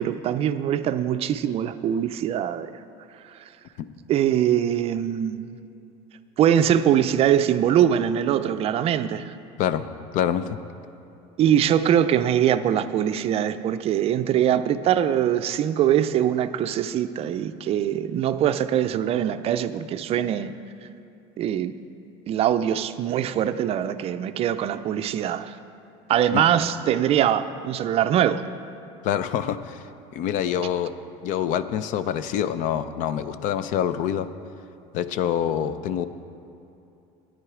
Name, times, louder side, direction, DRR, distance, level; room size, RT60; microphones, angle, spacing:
voice 1, 0.0-2.7 3.3-3.4 4.1-5.4 6.4-9.3 11.4-20.5 21.4-21.8 22.3-25.5 26.1-28.4, right 10 dB, 45° right, 11 dB, 0.4 m, -22 dB
voice 2, 10.1-10.5 26.3-26.4 29.0-29.8 30.1-30.9 31.2-34.3 34.9-36.1, left 9 dB, 60° left, 13 dB, 0.5 m, -26 dB
11.0 x 9.5 x 4.9 m, 2.7 s
supercardioid pair, 115°, 15 cm